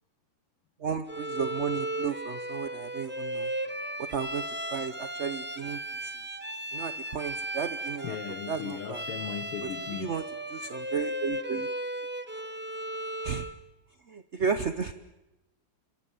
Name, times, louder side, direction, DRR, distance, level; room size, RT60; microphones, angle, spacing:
voice 1, 0.8-3.5 4.0-4.4 4.7-6.2 6.7-8.2 8.5-9.0 9.6-10.2 10.5-11.7 13.2-13.5 14.1-14.9, right 6 dB, 50° right, 0.8 m, -33 dB
Bowed string instrument, 1.1-13.6, right 1 dB, 10° right, 0.6 m, -36 dB
voice 2, 8.0-10.2 11.0-11.1, left 9 dB, 85° left, 2.0 m, -37 dB
27.5 x 23.0 x 7.0 m
omnidirectional pair, 2.4 m